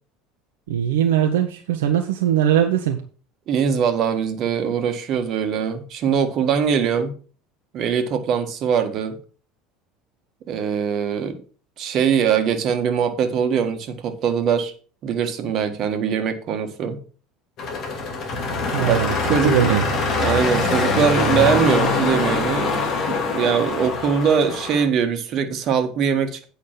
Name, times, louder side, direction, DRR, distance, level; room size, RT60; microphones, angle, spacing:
voice 1, 0.7-3.0 18.7-19.8, right 10 dB, 65° right, 0.9 m, -20 dB
voice 2, 3.5-7.1 7.7-9.2 10.5-11.4 11.8-14.7 15.0-17.0 18.8-19.8 20.2-26.5, right 7 dB, 45° right, 1.4 m, -22 dB
sound 1, 17.6-24.9, left 3 dB, 45° left, 2.4 m, -23 dB
8.7 x 5.4 x 6.0 m
figure-of-eight pair, 70°, 0 cm